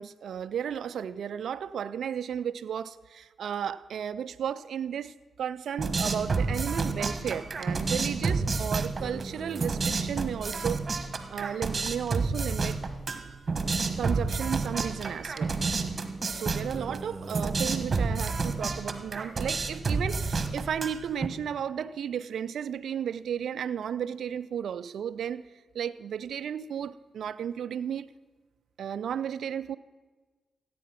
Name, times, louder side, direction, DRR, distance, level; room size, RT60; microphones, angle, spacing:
voice 1, 0.0-10.8 11.3-12.8 14.0-15.6 16.3-25.4 25.7-28.1 28.8-29.8, right 8 dB, 75° right, 14 dB, 0.3 m, -34 dB
sound 1, 5.8-21.3, right 4 dB, 45° right, 1.2 m, -30 dB
15.5 x 8.4 x 5.8 m, 1.3 s
supercardioid pair, 45°, 0 cm